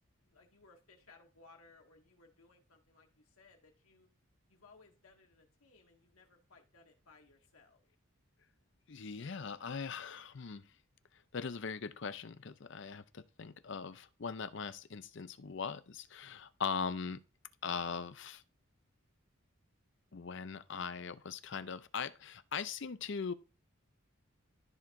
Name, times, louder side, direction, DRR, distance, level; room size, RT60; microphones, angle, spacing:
voice 1, 0.2-4.1 4.5-7.8, left 3 dB, 90° left, 1.9 m, -62 dB
voice 2, 8.9-10.7 11.3-17.2 17.6-18.4 20.1-23.3, left 5 dB, 60° left, 0.6 m, -40 dB
14.0 x 4.8 x 2.6 m
head